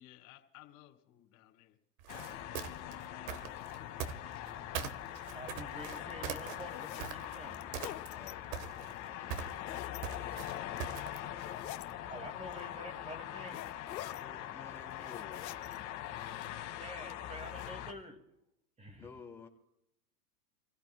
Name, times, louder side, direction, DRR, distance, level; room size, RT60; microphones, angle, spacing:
voice 1, 0.0-1.8 2.3-5.1 5.9-6.1, left 14 dB, 55° left, 3.3 m, -60 dB
sound 1, 2.0-4.5 4.7-7.4 7.7-8.3 8.5-11.3, right 8 dB, 55° right, 1.5 m, -41 dB
sound 2, 2.1-17.9, left 12 dB, 35° left, 2.1 m, -43 dB
sound 3, 5.2-5.4 6.0-7.1 7.5-8.3 9.3-10.0 10.6-11.0 11.4-11.9 12.5-12.6 13.5-14.2 14.8-15.8 16.0-16.6 17.1-17.7, left 14 dB, 90° left, 0.9 m, -47 dB
voice 2, 5.3-7.6 12.1-13.7 16.8-18.2 18.8-19.1, right 1 dB, 15° right, 2.2 m, -48 dB
voice 3, 7.5-11.0 13.8-15.9 19.0-19.5, left 5 dB, 5° left, 3.0 m, -55 dB
28.5 x 16.5 x 2.3 m
supercardioid pair, 135°, 50 cm